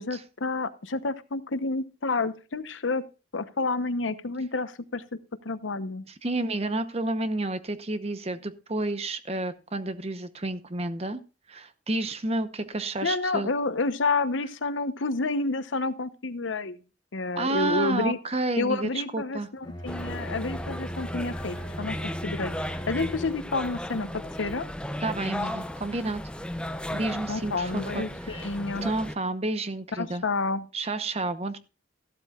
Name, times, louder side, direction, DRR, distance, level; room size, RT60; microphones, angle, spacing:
voice 1, 0.0-3.0 3.3-5.0 5.4-6.0 13.0-16.8 17.1-18.2 18.6-22.0 22.2-24.7 27.3-28.9 30.0-30.7, left 3 dB, 85° left, 12 dB, 0.9 m, -29 dB
voice 2, 6.1-11.2 11.5-13.5 17.4-19.5 25.0-26.2 26.9-28.5 28.8-30.2 30.7-31.6, right 2 dB, 35° right, 11 dB, 0.9 m, -30 dB
Bowed string instrument, 19.6-23.6, equal, 25° left, 1.1 m, -38 dB
sound 1, 19.9-29.2, left 1 dB, 5° left, 0.5 m, -35 dB
14.5 x 12.5 x 2.4 m, 0.31 s
head